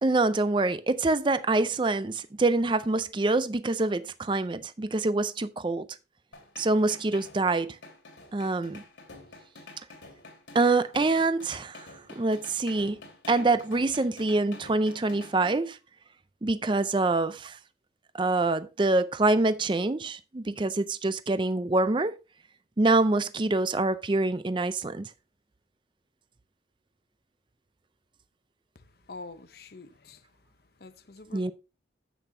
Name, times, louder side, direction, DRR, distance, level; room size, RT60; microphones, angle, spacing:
voice 1, 0.0-5.9 6.6-7.8 8.3-8.8 10.5-11.9 12.2-13.0 13.3-15.8 16.4-17.6 18.1-22.2 22.8-25.1 31.3-31.5, right 2 dB, 25° right, 0.5 m, -25 dB
sound 1, 6.3-15.6, left 2 dB, 85° left, 2.6 m, -48 dB
voice 2, 29.1-30.2 30.8-31.5, left 3 dB, 55° left, 0.8 m, -45 dB
10.0 x 8.1 x 2.7 m
head